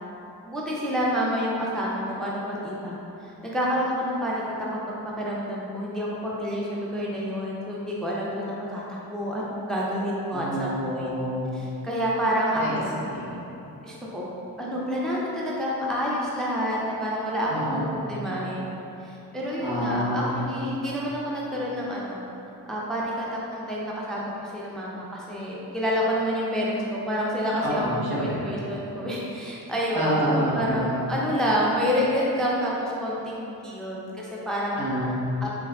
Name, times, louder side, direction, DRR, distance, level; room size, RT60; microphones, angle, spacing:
voice 1, 0.5-3.0 3.2-4.4 5.2-11.2 11.5-12.9 13.8-14.3 14.6-18.7 19.0-22.2 22.7-27.9 28.2-30.2 30.5-34.8 35.4-35.5, equal, ahead, -5 dB, 0.5 m, -28 dB
voice 2, 10.3-11.5 12.6-12.8 13.0-13.3 17.5-17.9 19.6-20.3 27.6-28.4 29.9-30.9 34.8-35.4, equal, 65° right, -8 dB, 1.1 m, -27 dB
3.4 x 3.3 x 2.3 m, 2.9 s
cardioid pair, 55°, 40 cm